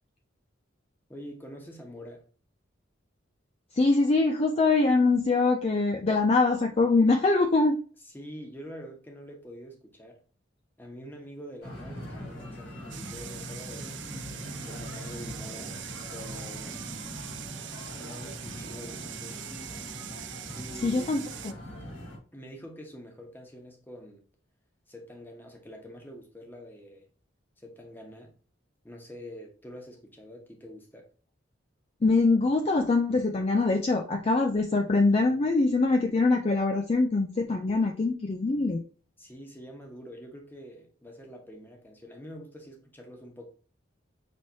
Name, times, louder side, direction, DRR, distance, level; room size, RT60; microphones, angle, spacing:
voice 1, 1.1-2.2 8.0-10.2 10.8-14.1 14.6-15.8 16.1-16.8 18.0-19.4 20.5-21.1 22.3-24.2 24.9-27.1 27.6-28.3 28.8-31.1 39.2-43.5, equal, 10° left, 1.0 m, -45 dB
voice 2, 3.7-7.7 20.8-21.5 32.0-38.8, left 3 dB, 30° left, 0.4 m, -23 dB
sound 1, 11.6-22.2, equal, 80° left, 2.3 m, -41 dB
sound 2, 12.9-21.5, right 11 dB, 65° right, 0.4 m, -42 dB
6.1 x 3.1 x 2.7 m
head